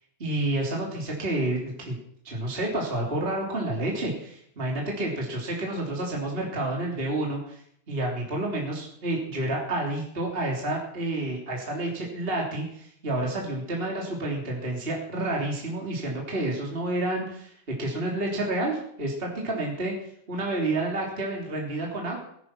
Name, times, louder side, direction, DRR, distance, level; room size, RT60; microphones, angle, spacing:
voice 1, 0.2-2.0 2.2-7.6 7.9-17.5 17.8-19.9 20.3-22.2, right 2 dB, 20° right, -1 dB, 3.3 m, -29 dB
19.5 x 10.5 x 6.1 m, 0.68 s
omnidirectional pair, 3.4 m